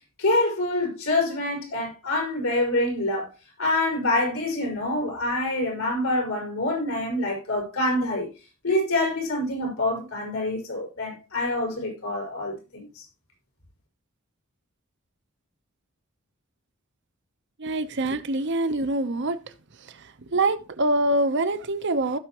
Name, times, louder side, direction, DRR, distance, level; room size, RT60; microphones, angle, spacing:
voice 1, 0.2-3.3 3.6-8.3 8.6-13.0, left 1 dB, 85° left, 5.1 m, -26 dB
voice 2, 17.6-19.4 19.9-22.2, right 2 dB, 60° right, 0.9 m, -25 dB
16.5 x 5.8 x 3.0 m
head